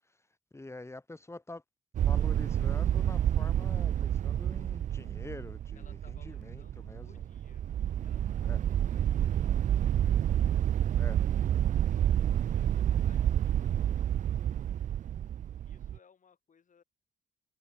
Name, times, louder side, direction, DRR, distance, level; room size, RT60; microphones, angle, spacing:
voice 1, 0.5-1.6 2.0-7.2 8.4-8.6 10.9-11.2, left 2 dB, 15° left, 2.5 m, -46 dB
sound 1, 1.9-16.0, right 10 dB, 45° right, 0.4 m, -29 dB
voice 2, 5.7-7.7 8.0-10.3 12.5-14.9 15.6-16.8, left 6 dB, 45° left, 4.2 m, -64 dB
supercardioid pair, 70°, 18 cm